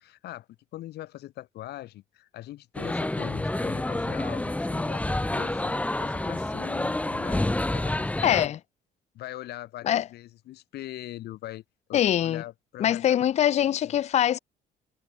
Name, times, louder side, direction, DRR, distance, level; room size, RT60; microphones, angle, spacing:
voice 1, 0.0-5.0 5.3-8.5 9.1-11.6 11.9-14.0, left 15 dB, 75° left, 6.8 m, -42 dB
sound 1, 2.7-8.5, left 1 dB, 10° left, 1.5 m, -28 dB
voice 2, 8.2-8.6 9.8-10.0 11.9-12.4 12.8-14.4, left 11 dB, 40° left, 0.5 m, -23 dB
cardioid pair, 110°, 17 cm